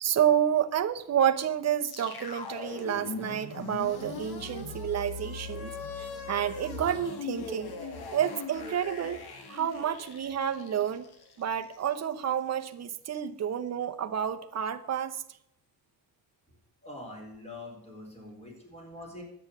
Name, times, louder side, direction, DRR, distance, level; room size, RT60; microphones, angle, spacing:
voice 1, 0.0-7.7 8.1-9.2 9.5-11.1 11.4-15.2, right 9 dB, 40° right, 8 dB, 0.9 m, -29 dB
sound 1, 1.8-12.0, left 4 dB, 65° left, 1.9 m, -40 dB
voice 2, 16.8-19.2, left 1 dB, 15° left, 0 dB, 4.3 m, -44 dB
10.5 x 8.7 x 6.6 m, 0.74 s
cardioid pair, 140°, 40 cm